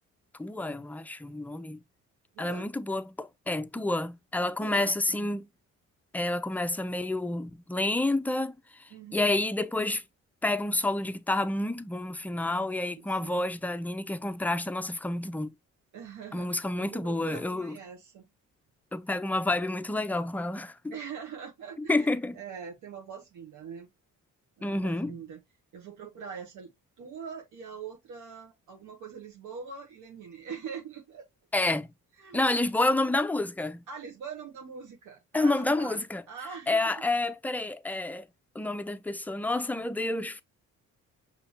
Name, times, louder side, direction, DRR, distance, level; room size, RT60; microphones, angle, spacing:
voice 1, 0.4-1.8 2.4-5.5 6.1-10.0 10.4-15.5 16.3-17.8 18.9-20.9 21.9-22.4 24.6-25.2 31.5-31.9 32.3-33.8 35.3-36.2 36.7-38.3 38.5-40.4, left 2 dB, 5° left, 0.4 m, -29 dB
voice 2, 2.3-2.7 4.6-5.3 8.9-9.3 12.6-13.3 15.9-18.3 19.2-19.4 20.9-22.1 22.3-23.9 24.6-25.4 25.7-26.7 27.0-31.2 32.2-32.5 33.9-36.0 36.3-37.1, right 6 dB, 85° right, 1.1 m, -43 dB
5.7 x 2.9 x 2.9 m
cardioid pair, 90°, 30 cm